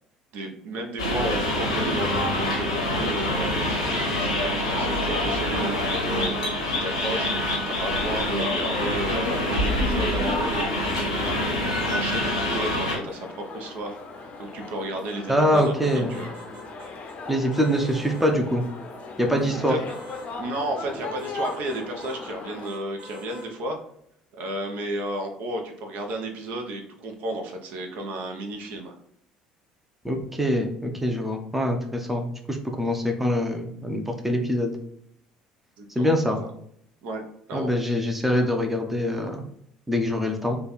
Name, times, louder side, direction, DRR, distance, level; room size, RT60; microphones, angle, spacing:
voice 1, 0.3-6.4 6.6-14.0 14.4-16.3 19.4-19.8 20.4-23.8 24.3-29.0 35.8-36.1 36.4-36.5 37.0-37.2 37.5-37.7, right 1 dB, 55° right, 3 dB, 0.6 m, -33 dB
sound 1, 1.0-13.0, left 1 dB, 80° left, 0.7 m, -25 dB
sound 2, 3.8-22.7, left 3 dB, 45° left, 0.6 m, -39 dB
voice 2, 15.3-16.2 17.3-18.6 19.2-19.7 30.0-34.7 36.0-36.4 37.5-39.4 39.9-40.6, equal, 5° right, 3 dB, 0.6 m, -24 dB
sound 3, 15.5-17.2 17.5-18.3 19.9-20.3 21.2-22.2 22.6-23.5, right 1 dB, 30° right, 0.9 m, -45 dB
3.3 x 2.3 x 4.0 m, 0.71 s
figure-of-eight pair, 60°, 3 cm